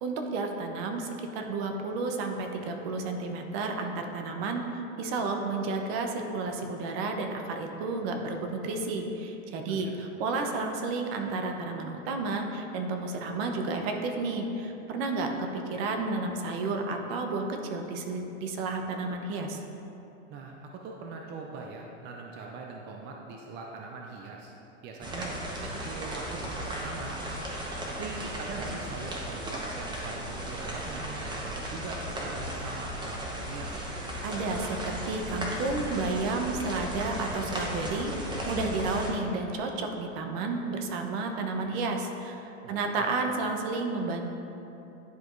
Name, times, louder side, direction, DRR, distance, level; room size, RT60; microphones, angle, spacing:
voice 1, 0.0-19.6 34.2-38.1 38.5-44.3, right 3 dB, 55° right, 4 dB, 0.9 m, -31 dB
voice 2, 20.3-24.5 24.8-27.2 27.9-33.9 42.6-43.1, right 4 dB, 30° right, 0 dB, 0.5 m, -41 dB
sound 1, 25.0-39.1, equal, 10° right, 0.9 m, -36 dB
10.5 x 4.7 x 2.6 m, 2.9 s
hypercardioid pair, 120°, 37 cm